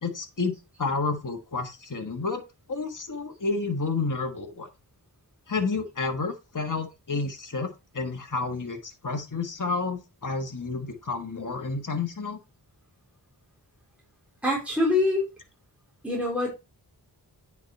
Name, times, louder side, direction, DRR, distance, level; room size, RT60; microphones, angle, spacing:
voice 1, 0.0-4.7 5.5-12.4, left 4 dB, 50° left, 4 dB, 1.6 m, -30 dB
voice 2, 14.4-15.3 16.0-16.5, left 2 dB, 5° right, -3 dB, 3.7 m, -24 dB
9.4 x 4.9 x 4.2 m, 0.26 s
wide cardioid pair, 70°, 41 cm